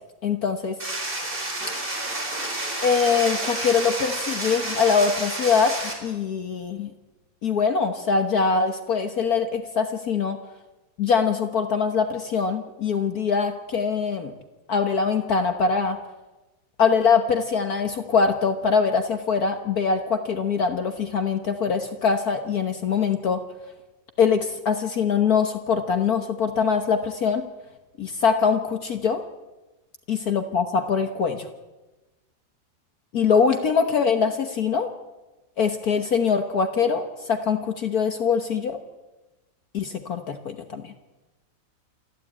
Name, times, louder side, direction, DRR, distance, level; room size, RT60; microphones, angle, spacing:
voice 1, 0.2-0.8 2.8-6.9 7.4-10.4 11.0-14.3 14.7-16.0 16.8-23.4 24.2-27.4 28.0-29.2 30.1-31.5 33.1-34.9 35.6-38.8 39.7-40.9, left 5 dB, 55° left, 7 dB, 1.5 m, -23 dB
sound 1, 0.8-5.9, right 2 dB, 25° right, 4.0 m, -30 dB
27.5 x 12.0 x 8.7 m, 1.1 s
omnidirectional pair, 2.1 m